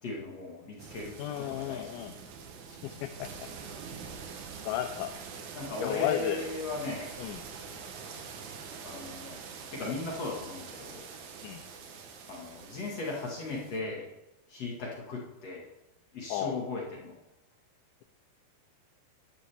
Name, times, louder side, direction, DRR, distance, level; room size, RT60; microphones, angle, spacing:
voice 1, 0.0-2.0 5.5-7.1 8.8-9.4 9.7-11.0 12.3-14.1 14.5-15.7 16.1-17.1, left 3 dB, 50° left, -2 dB, 2.2 m, -37 dB
sound 1, 0.8-13.8, right 5 dB, 85° right, 1.7 m, -45 dB
voice 2, 1.2-2.1 2.8-3.3 4.7-5.1 5.8-6.5 7.2-7.4 11.4-11.6 16.3-16.5, left 11 dB, 90° left, 6 dB, 3.1 m, -33 dB
12.5 x 11.5 x 3.5 m, 0.92 s
omnidirectional pair, 5.2 m